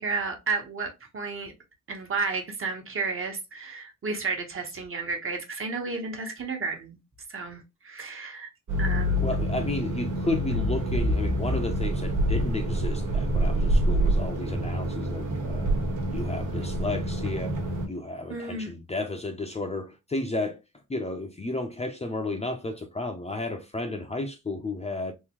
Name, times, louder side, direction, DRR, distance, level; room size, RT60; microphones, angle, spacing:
voice 1, 0.0-1.5 1.9-7.0 7.3-8.5 8.8-9.3 18.3-18.7, right 4 dB, 45° right, 1.2 m, -32 dB
sound 1, 8.7-17.9, right 1 dB, 75° right, 1.4 m, -26 dB
voice 2, 9.2-15.7 16.1-17.6 17.9-20.6 20.9-25.1, left 2 dB, 20° left, 0.6 m, -32 dB
3.8 x 2.7 x 2.9 m
cardioid pair, 95°, 31 cm